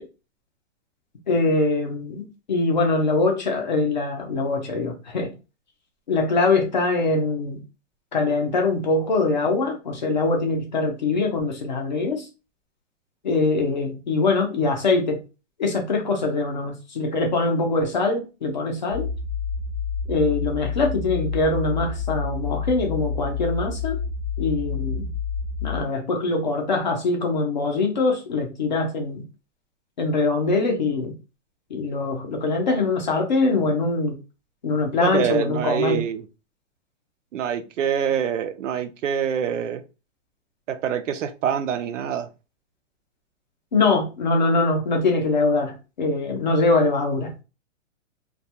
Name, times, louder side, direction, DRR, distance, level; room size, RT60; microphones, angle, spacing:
voice 1, 1.3-5.3 6.1-7.6 8.1-12.3 13.2-15.2 15.6-19.1 20.1-24.0 24.4-25.1 25.6-29.2 30.0-31.1 31.7-34.2 34.6-36.0 43.7-47.3, left 3 dB, 35° left, 0.5 m, -23 dB
sound 1, 18.9-25.8, left 5 dB, 30° right, 0.6 m, -29 dB
voice 2, 35.0-36.2 37.3-39.8 40.7-42.3, right 8 dB, 75° right, 0.5 m, -25 dB
2.3 x 2.2 x 2.7 m
hypercardioid pair, 170°, 38 cm